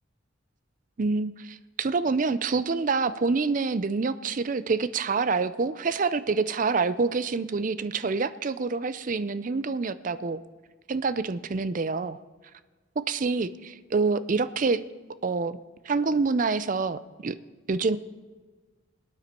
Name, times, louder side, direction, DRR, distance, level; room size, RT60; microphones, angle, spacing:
voice 1, 1.0-10.4 10.9-12.2 13.1-14.8 15.2-15.6 15.9-17.3 17.7-18.0, right 4 dB, 40° right, 15 dB, 0.4 m, -27 dB
24.0 x 9.0 x 4.4 m, 1.4 s
head